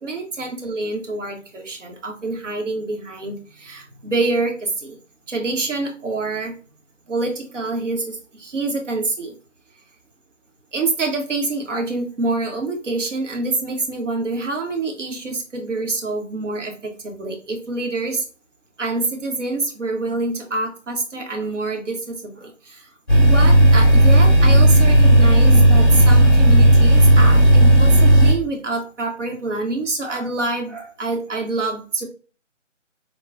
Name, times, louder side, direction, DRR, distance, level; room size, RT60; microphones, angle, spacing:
voice 1, 0.0-5.0 5.3-6.5 7.1-9.4 10.7-18.2 18.8-22.9 23.2-32.1, right 2 dB, 75° right, 3 dB, 1.2 m, -26 dB
sound 1, 23.1-28.3, right 1 dB, 10° right, 0.5 m, -12 dB
3.6 x 2.3 x 2.5 m, 0.38 s
figure-of-eight pair, 150°, 37 cm